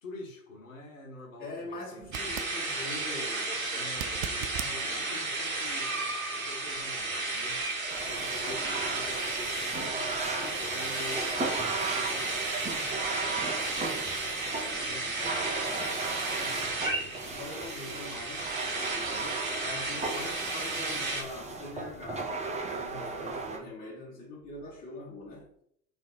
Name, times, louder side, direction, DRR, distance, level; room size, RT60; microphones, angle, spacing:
voice 1, 0.0-2.3 3.7-7.6 8.0-10.2 10.5-12.5 13.1-13.5 14.8-15.1 16.4-17.2 22.9-23.3, left 3 dB, 75° left, 1.4 m, -47 dB
voice 2, 1.4-5.3 13.5-13.7 14.7-22.4 22.7-25.5, left 2 dB, 20° left, 1.6 m, -44 dB
sound 1, 2.0-2.6 3.9-4.8 7.8-7.9, right 11 dB, 45° right, 0.5 m, -38 dB
sound 2, 2.1-21.2, right 3 dB, 90° right, 1.0 m, -33 dB
sound 3, 7.9-23.6, right 3 dB, 15° right, 1.0 m, -36 dB
3.6 x 3.2 x 4.2 m
figure-of-eight pair, 75°, 40 cm